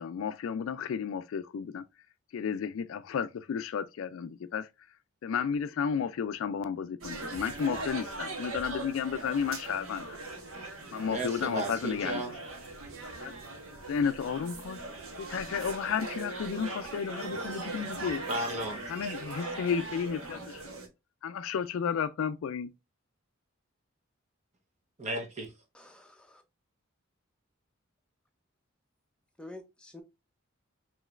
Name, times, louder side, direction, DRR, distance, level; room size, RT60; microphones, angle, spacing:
voice 1, 0.0-1.8 2.3-4.7 5.2-10.2 10.9-12.3 13.2-13.3 13.9-14.8 15.2-18.2 18.9-20.7 21.2-22.7, left 7 dB, 65° left, 0.3 m, -32 dB
sound 1, 7.0-20.9, right 3 dB, 75° right, 1.1 m, -40 dB
voice 2, 11.1-12.3 18.3-19.1 25.0-25.5, right 1 dB, 35° right, 0.9 m, -34 dB
voice 3, 25.7-26.4 29.4-30.0, left 2 dB, 5° left, 0.6 m, -48 dB
4.9 x 3.1 x 2.4 m
head